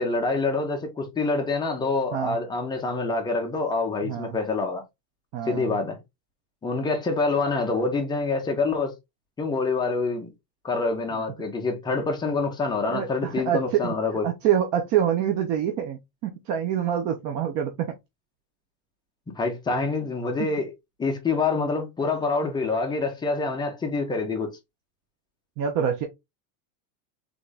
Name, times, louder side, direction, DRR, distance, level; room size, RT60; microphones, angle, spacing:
voice 1, 0.0-4.8 5.5-6.0 6.6-8.9 9.4-10.3 10.6-14.2 19.4-20.7 21.0-24.5, left 3 dB, 10° left, 0.4 m, -26 dB
voice 2, 4.0-4.4 5.3-5.8 12.9-13.9 14.2-17.9 25.6-26.1, right 9 dB, 40° right, 0.6 m, -26 dB
3.5 x 3.4 x 3.8 m
cardioid pair, 165°, 49 cm